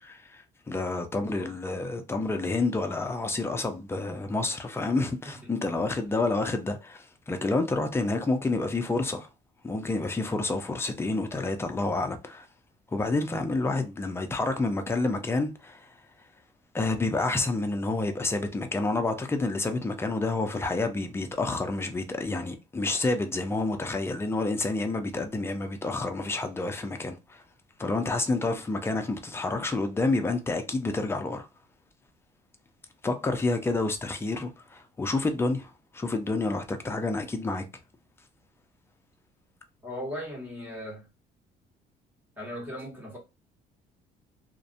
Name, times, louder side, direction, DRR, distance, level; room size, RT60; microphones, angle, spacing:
voice 1, 0.0-9.3 9.6-12.5 12.9-15.9 16.7-27.4 27.8-31.5 33.0-37.6, left 3 dB, 15° left, 0.5 m, -29 dB
voice 2, 1.1-1.5 5.4-5.5 39.8-41.1 42.4-43.2, equal, 10° right, 1.3 m, -38 dB
2.5 x 2.1 x 2.5 m
cardioid pair, 110°, 17 cm